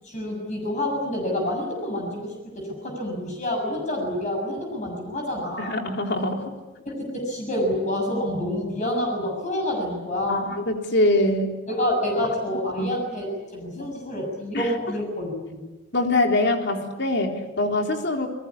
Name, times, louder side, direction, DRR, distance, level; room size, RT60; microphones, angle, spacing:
voice 1, 0.0-5.8 6.9-10.6 11.7-15.7, left 1 dB, 40° left, 1 dB, 7.1 m, -28 dB
voice 2, 5.6-6.5 10.3-11.5 12.8-12.9 14.5-14.7 15.9-18.3, left 1 dB, 60° left, 3 dB, 3.7 m, -23 dB
29.0 x 21.0 x 8.6 m, 1.1 s
head